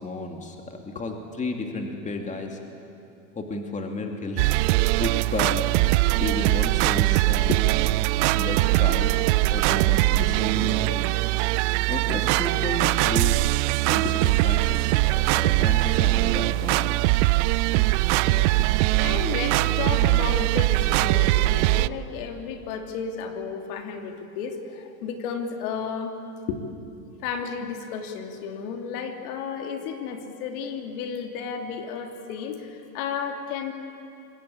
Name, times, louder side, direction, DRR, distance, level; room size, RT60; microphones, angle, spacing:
voice 1, 0.0-2.6 3.4-5.6 6.2-7.5 8.3-9.1 9.5-11.0 11.6-13.5 13.9-17.0, left 2 dB, 15° left, 3 dB, 2.5 m, -33 dB
sound 1, 4.4-21.9, right 21 dB, 50° right, 0.5 m, -21 dB
voice 2, 7.5-8.1 10.2-10.3 14.0-14.1 18.2-18.7 19.0-26.2 26.5-26.6 27.2-33.7, left 6 dB, 60° left, 4 dB, 2.9 m, -33 dB
26.0 x 21.0 x 8.6 m, 2.7 s
supercardioid pair, 125°, 49 cm